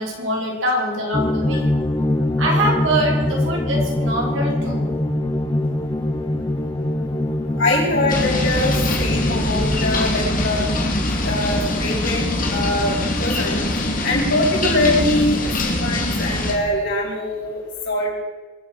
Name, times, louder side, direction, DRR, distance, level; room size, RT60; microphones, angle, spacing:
voice 1, 0.0-1.7 2.4-5.0, right 1 dB, 70° right, -2 dB, 4.5 m, -24 dB
sound 1, 1.1-14.2, left 1 dB, 20° left, 0.6 m, -24 dB
voice 2, 7.6-10.7 11.2-13.6 14.0-17.6 17.8-18.1, left 2 dB, 65° left, -4 dB, 6.7 m, -23 dB
sound 2, 8.1-16.5, left 1 dB, 45° left, 2.4 m, -23 dB
23.0 x 7.7 x 6.2 m, 1.2 s
head